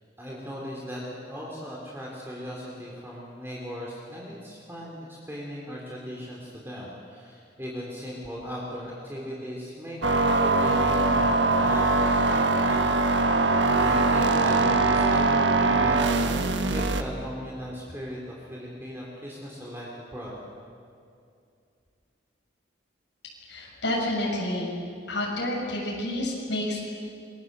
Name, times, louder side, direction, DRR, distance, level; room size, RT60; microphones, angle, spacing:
voice 1, 0.2-13.5 13.8-20.4, equal, 10° right, -4 dB, 3.8 m, -38 dB
sound 1, 10.0-17.0, right 3 dB, 75° right, 1.5 m, -22 dB
voice 2, 23.5-24.7 25.1-26.8, left 1 dB, 75° left, -3 dB, 6.9 m, -29 dB
27.5 x 23.5 x 7.7 m, 2.4 s
head